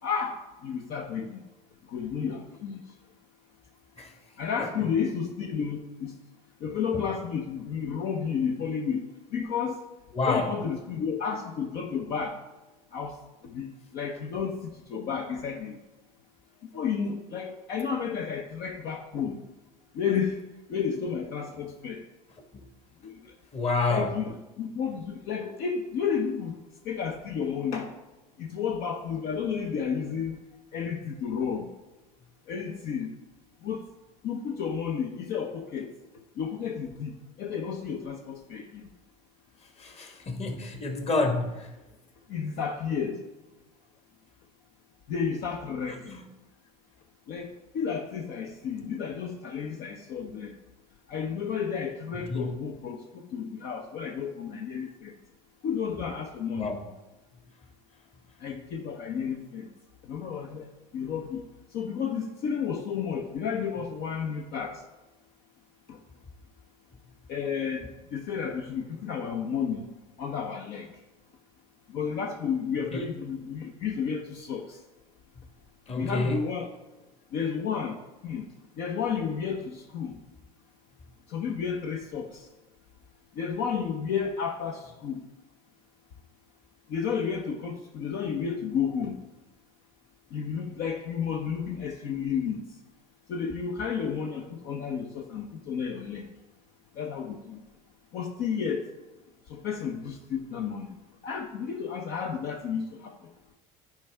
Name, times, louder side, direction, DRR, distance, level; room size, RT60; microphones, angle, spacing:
voice 1, 0.0-1.4 1.9-2.8 4.4-6.2 6.6-9.0 9.3-9.8 10.2-12.4 12.9-13.2 13.4-14.6 14.9-15.8 16.7-19.4 19.9-20.4 20.7-22.0 23.0-23.1 23.9-26.6 26.8-27.9 28.4-30.3 30.7-31.7 32.5-33.1 33.6-33.8 34.2-35.9 36.4-38.8 42.3-43.2 45.1-46.1 47.3-50.5 51.1-53.0 53.3-55.1 55.6-56.7 58.4-59.7 60.1-60.7 60.9-61.4 61.7-64.8 65.9-66.0 67.3-69.9 70.2-70.9 71.9-74.8 76.0-76.7 77.3-78.0 78.2-78.4 78.8-80.1 81.3-82.4 83.4-85.2 86.9-89.2 90.3-92.6 93.3-96.3 97.0-97.6 98.1-98.9 99.5-100.9 101.2-103.1, left 6 dB, 60° left, 2 dB, 0.7 m, -32 dB
voice 2, 10.1-10.5 22.5-22.6 23.5-24.2 39.8-41.7 46.1-46.2 52.3-52.5 56.6-56.9 72.9-73.0 75.9-76.4, left 3 dB, 35° left, 5 dB, 1.3 m, -29 dB
10.5 x 4.5 x 3.4 m, 1.1 s
hypercardioid pair, 75°, 18 cm